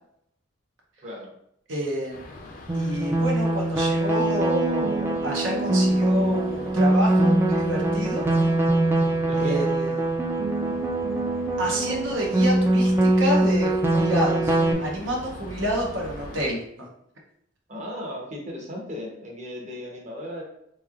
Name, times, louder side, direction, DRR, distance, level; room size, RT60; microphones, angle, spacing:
voice 1, 1.0-1.3 4.3-4.4 9.2-9.6 17.7-20.4, left 1 dB, 35° right, -2 dB, 0.9 m, -36 dB
voice 2, 1.7-2.3 2.7-8.3 9.4-10.0 11.6-16.9, equal, 70° right, -2 dB, 0.7 m, -29 dB
sound 1, 2.1-16.5, left 2 dB, 45° left, 0.5 m, -42 dB
sound 2, 2.7-14.7, right 2 dB, 10° right, 0.3 m, -22 dB
3.6 x 3.1 x 2.4 m, 0.73 s
head